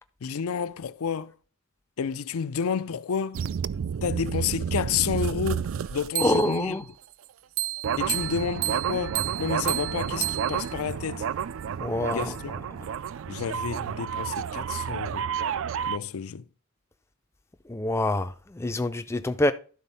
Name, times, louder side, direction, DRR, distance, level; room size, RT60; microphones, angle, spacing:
voice 1, 0.2-1.3 2.0-3.4 4.0-6.7 8.0-11.2 12.1-12.5 13.3-15.3 15.9-16.4, left 6 dB, 75° left, 0.5 m, -30 dB
sound 1, 3.3-6.7 7.6-16.0, right 8 dB, 60° right, 0.3 m, -30 dB
voice 2, 6.2-6.8 11.8-12.4 17.7-19.5, left 1 dB, 10° left, 0.4 m, -26 dB
11.5 x 4.1 x 5.5 m
head